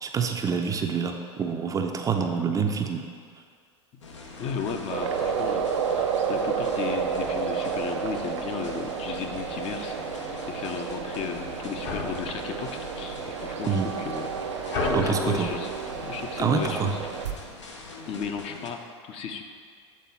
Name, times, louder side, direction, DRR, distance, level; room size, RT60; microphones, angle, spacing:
voice 1, 0.0-3.0 13.6-13.9 14.9-15.5 16.4-16.9, right 6 dB, 25° right, 4 dB, 0.5 m, -26 dB
sound 1, 4.0-18.7, left 3 dB, 85° left, 0.7 m, -44 dB
sound 2, 4.3-17.9, left 3 dB, 60° left, 1.0 m, -39 dB
voice 2, 4.4-14.3 14.8-15.7 16.0-17.0 18.1-18.8 19.0-19.4, left 6 dB, 40° left, 5 dB, 0.6 m, -35 dB
sound 3, 4.9-17.3, right 7 dB, 80° right, 0.5 m, -31 dB
7.4 x 3.6 x 4.2 m, 2.1 s
hypercardioid pair, 90°, 15 cm